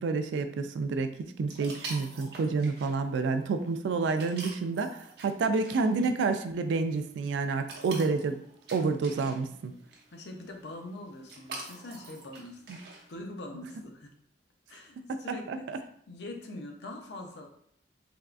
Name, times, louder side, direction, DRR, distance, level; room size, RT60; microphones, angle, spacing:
voice 1, 0.0-8.4 8.7-9.7 12.7-12.8 15.1-15.2 15.5-15.8, right 4 dB, 85° right, 9 dB, 0.3 m, -29 dB
sound 1, 1.5-13.1, right 3 dB, 60° right, 0.7 m, -47 dB
voice 2, 10.1-12.8 13.1-14.1 14.7-15.7 16.1-17.5, left 1 dB, 70° left, 3 dB, 0.5 m, -43 dB
3.5 x 2.3 x 2.4 m, 0.65 s
head